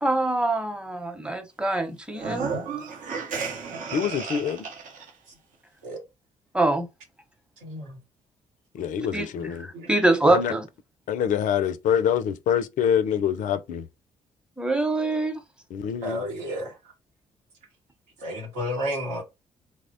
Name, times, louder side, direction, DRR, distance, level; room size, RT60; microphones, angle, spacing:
voice 1, 0.0-2.5 6.5-6.9 9.1-10.7 14.6-15.4, right 2 dB, 5° right, 0.8 m, -24 dB
sound 1, 2.1-5.1, right 5 dB, 60° right, 0.7 m, -33 dB
voice 2, 3.9-4.6 8.7-9.7 10.3-10.5 11.1-13.8 15.7-16.2, left 8 dB, 60° left, 0.4 m, -25 dB
voice 3, 7.6-8.0 9.7-9.9 16.0-16.7 18.2-19.2, equal, 85° right, 1.0 m, -31 dB
3.0 x 2.1 x 2.6 m
hypercardioid pair, 45°, 15 cm